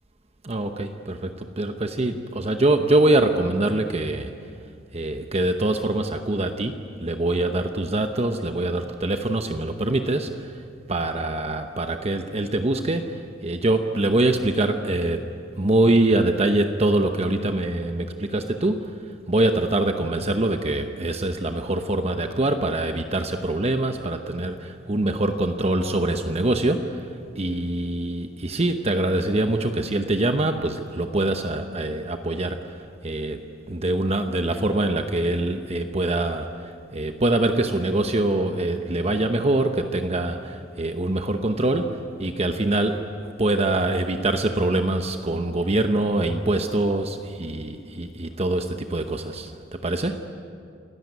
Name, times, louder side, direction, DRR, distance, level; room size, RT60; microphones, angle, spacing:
voice 1, 0.4-4.3 4.9-10.6 10.9-15.2 15.6-18.9 19.3-27.1 27.4-33.4 33.7-43.1 43.4-50.1, right 2 dB, 35° right, 6 dB, 0.9 m, -24 dB
28.0 x 14.0 x 9.6 m, 2.4 s
head